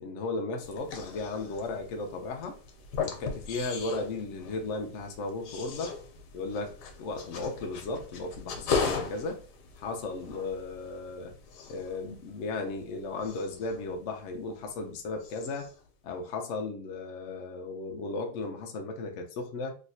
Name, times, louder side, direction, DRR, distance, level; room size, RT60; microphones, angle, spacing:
voice 1, 0.0-2.6 3.0-5.9 6.3-9.4 9.8-11.3 11.7-15.7 16.0-19.7, left 3 dB, 70° left, 0.7 m, -35 dB
sound 1, 0.6-14.9 15.2-15.8, left 5 dB, 85° left, 1.3 m, -38 dB
3.1 x 2.8 x 2.7 m
omnidirectional pair, 1.7 m